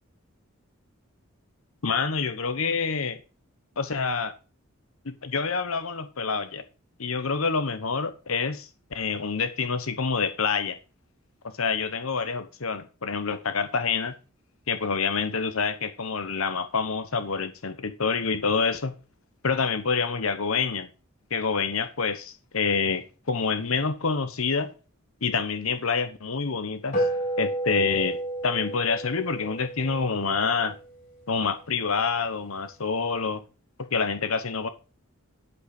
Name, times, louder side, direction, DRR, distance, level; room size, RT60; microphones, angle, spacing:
voice 1, 1.8-3.2 3.8-4.3 5.0-6.6 7.0-10.8 11.6-14.1 14.7-18.9 19.4-20.9 21.3-24.7 25.2-27.1 27.4-28.2 28.4-30.8 31.3-33.4 33.9-34.7, left 5 dB, 70° left, 1.0 m, -27 dB
sound 1, 26.9-31.6, right 1 dB, 40° left, 5.8 m, -31 dB
12.5 x 5.5 x 5.2 m
head